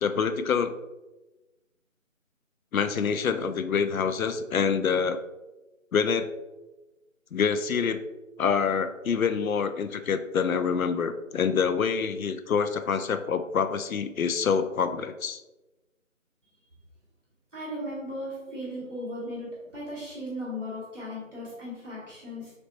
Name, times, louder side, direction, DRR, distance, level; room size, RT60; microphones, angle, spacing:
voice 1, 0.0-0.7 2.7-5.2 5.9-6.3 7.3-8.0 8.4-15.4, left 6 dB, 85° left, 10 dB, 0.5 m, -26 dB
voice 2, 17.5-22.5, equal, 10° right, -19 dB, 1.0 m, -36 dB
4.1 x 3.3 x 2.9 m, 1.1 s
figure-of-eight pair, 160°, 40 cm